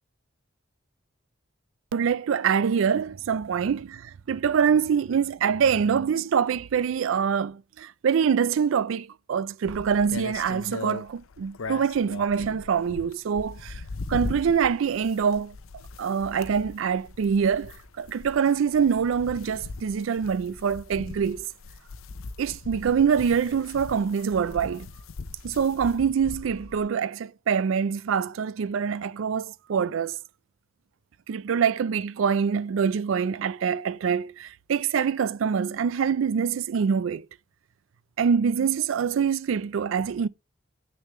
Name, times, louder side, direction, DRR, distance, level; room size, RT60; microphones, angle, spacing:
voice 1, 1.9-13.8 14.1-15.6 16.0-21.5 22.4-24.9 25.4-30.2 31.3-37.3 38.2-40.3, right 7 dB, 70° right, 0.4 m, -25 dB
sound 1, 9.6-26.9, left 3 dB, 85° left, 0.6 m, -40 dB
8.4 x 6.5 x 3.1 m
head